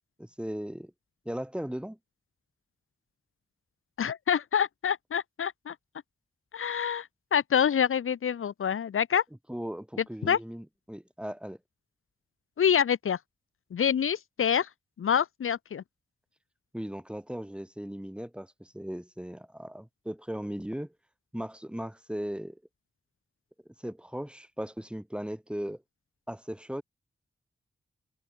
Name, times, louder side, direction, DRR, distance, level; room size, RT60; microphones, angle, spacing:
voice 1, 0.2-0.9 1.2-2.0 9.5-11.6 16.7-20.9 21.3-22.6 23.8-25.8 26.3-26.8, equal, 5° right, 2.9 m, -37 dB
voice 2, 4.0-5.7 6.5-9.2 10.2-10.4 12.6-13.2 13.7-14.7 15.0-15.8, left 8 dB, 80° left, 1.1 m, -26 dB
wide cardioid pair, 90°, 21 cm